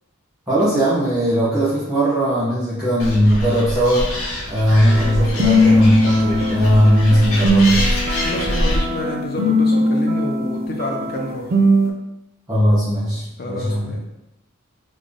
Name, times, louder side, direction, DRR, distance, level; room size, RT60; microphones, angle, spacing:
voice 1, 0.5-4.1 4.5-7.8 12.5-13.9, equal, 5° right, -13 dB, 1.2 m, -18 dB
Animal, 3.0-8.8, left 1 dB, 85° left, 1.0 m, -25 dB
sound 1, 4.9-11.9, equal, 45° right, 0.4 m, -19 dB
voice 2, 8.2-11.5 13.4-14.1, left 1 dB, 45° left, 1 dB, 0.5 m, -29 dB
3.6 x 2.1 x 3.7 m, 0.90 s
head